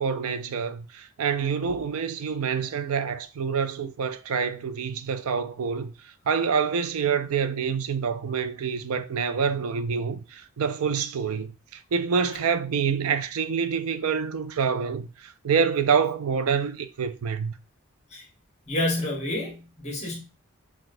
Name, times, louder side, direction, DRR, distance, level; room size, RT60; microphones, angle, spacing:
voice 1, 0.0-5.9 6.3-17.5, right 6 dB, 80° right, 0.4 m, -27 dB
voice 2, 18.7-20.2, left 1 dB, 30° left, 1.1 m, -29 dB
5.8 x 2.4 x 2.5 m
head